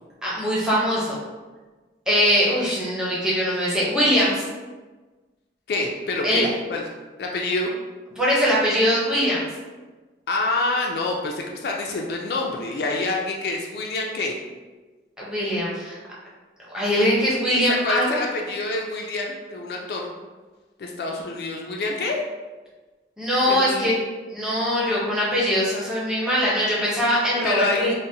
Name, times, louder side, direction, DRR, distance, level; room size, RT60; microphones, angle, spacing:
voice 1, 0.2-1.2 2.1-4.4 6.2-6.5 8.2-9.5 15.2-16.0 16.7-18.2 23.2-23.9 24.3-27.9, equal, 5° right, -7 dB, 0.6 m, -22 dB
voice 2, 5.7-6.9 7.2-7.7 10.3-14.4 17.5-20.1 20.8-22.2 23.5-23.9 27.4-27.9, left 2 dB, 55° left, 0 dB, 0.3 m, -27 dB
3.9 x 2.0 x 2.6 m, 1.3 s
head